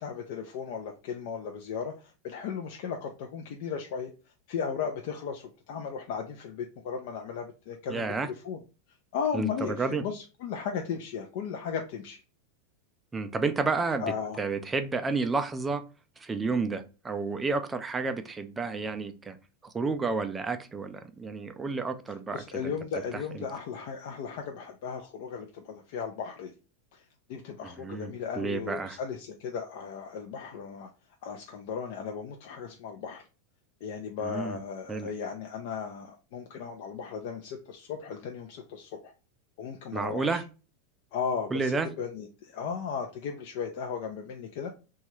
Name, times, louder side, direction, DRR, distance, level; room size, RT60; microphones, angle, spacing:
voice 1, 0.0-4.1 4.5-8.6 9.1-12.2 14.0-14.4 22.3-26.5 26.9-30.9 31.2-33.3 33.8-39.1 39.6-40.4 41.1-44.7, left 6 dB, 60° left, 0.4 m, -36 dB
voice 2, 7.9-8.3 9.3-10.0 13.1-14.0 14.4-15.8 16.2-19.4 19.6-22.7 23.3-23.4 27.6-29.0 34.2-34.6 34.9-35.1 39.9-40.4 41.5-41.9, right 4 dB, 15° right, 0.3 m, -31 dB
2.8 x 2.3 x 3.0 m
supercardioid pair, 145°, 0 cm